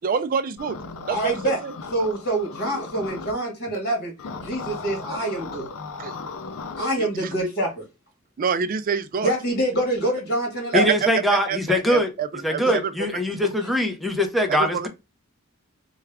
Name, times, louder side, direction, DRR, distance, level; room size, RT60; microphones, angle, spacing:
voice 1, 0.0-0.8 1.1-1.7 6.0-6.1 7.0-7.3 8.4-9.3 10.7-12.9 14.5-14.9, right 6 dB, 40° right, 0.4 m, -26 dB
sound 1, 0.6-3.3 4.2-6.8, left 4 dB, 90° left, 0.5 m, -36 dB
voice 2, 1.1-1.6 1.9-5.7 6.8-7.8 9.2-10.9 12.6-12.8, right 1 dB, 50° left, 1.8 m, -26 dB
voice 3, 10.7-12.1 12.4-14.9, left 1 dB, ahead, 0.6 m, -22 dB
3.3 x 2.3 x 3.4 m
head